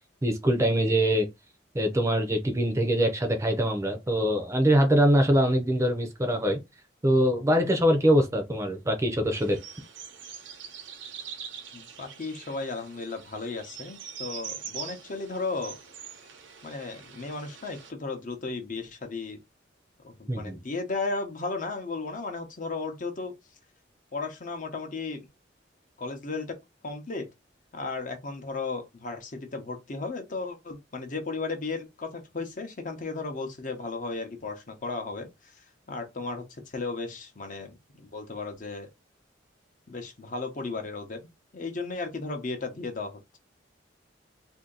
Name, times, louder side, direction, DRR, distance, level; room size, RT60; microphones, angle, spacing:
voice 1, 0.2-1.3 1.7-6.6 7.0-9.6 20.3-20.6, equal, 15° right, 0.6 m, -23 dB
sound 1, 9.3-17.9, right 7 dB, 85° right, 0.8 m, -43 dB
voice 2, 11.7-15.8 16.6-19.4 20.0-23.4 24.1-25.3 26.0-26.6 26.8-27.3 27.7-35.5 35.9-38.9 39.9-43.4, left 3 dB, 45° left, 0.8 m, -35 dB
2.7 x 2.7 x 3.8 m
head